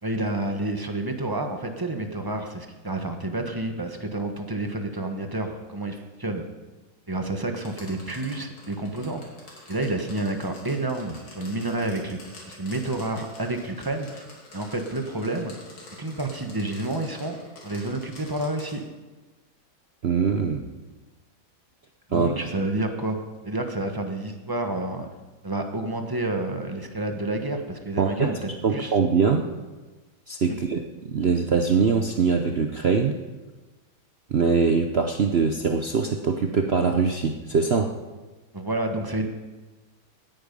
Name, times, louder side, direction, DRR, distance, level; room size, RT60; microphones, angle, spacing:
voice 1, 0.0-6.4 7.1-9.2 9.7-12.2 12.5-14.2 14.5-15.5 16.0-17.4 17.6-18.8 22.1-23.2 23.4-25.1 25.4-28.9 38.5-39.3, right 2 dB, 15° right, 5 dB, 0.8 m, -29 dB
sound 1, 7.6-18.8, left 2 dB, 85° left, 3.9 m, -47 dB
voice 2, 20.0-20.6 22.1-22.3 28.0-28.3 28.6-29.5 30.3-33.2 34.3-38.0, right 5 dB, 70° right, 5 dB, 0.6 m, -23 dB
17.5 x 10.0 x 5.4 m, 1.2 s
omnidirectional pair, 2.2 m